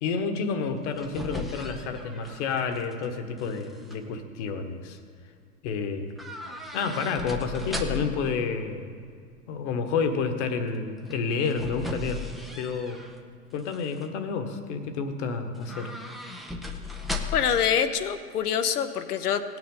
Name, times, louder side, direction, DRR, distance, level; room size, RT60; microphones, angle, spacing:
voice 1, 0.0-5.0 5.6-6.1 6.7-8.9 9.5-12.2 12.6-13.0 13.5-15.9, left 5 dB, 45° left, 7 dB, 1.4 m, -29 dB
sound 1, 0.7-3.1 3.4-4.0 6.2-8.3 11.0-13.2 13.6-14.1 15.5-17.6 17.9-18.0, left 3 dB, ahead, 0.6 m, -37 dB
voice 2, 17.3-19.4, left 8 dB, 70° left, 9 dB, 1.0 m, -25 dB
17.5 x 9.3 x 3.9 m, 2.1 s
figure-of-eight pair, 100°, 47 cm